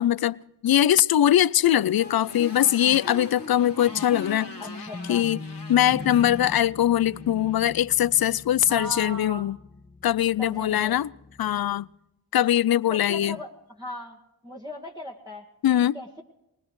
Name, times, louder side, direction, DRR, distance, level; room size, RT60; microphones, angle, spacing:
voice 1, 0.0-4.5 5.1-5.4 5.7-9.6 10.0-11.1 11.4-11.9 12.3-13.4 15.6-16.0, left 11 dB, 65° left, 0.5 m, -22 dB
Motorcycle, 1.2-7.7, left 3 dB, 90° left, 2.2 m, -44 dB
sound 1, 2.0-11.7, left 2 dB, 20° left, 1.2 m, -41 dB
voice 2, 4.6-5.2 8.7-9.5 10.4-11.0 12.9-13.5 13.8-14.2 14.4-15.4 15.9-16.2, equal, 10° right, 1.6 m, -37 dB
23.5 x 19.5 x 3.2 m
cardioid pair, 45°, 39 cm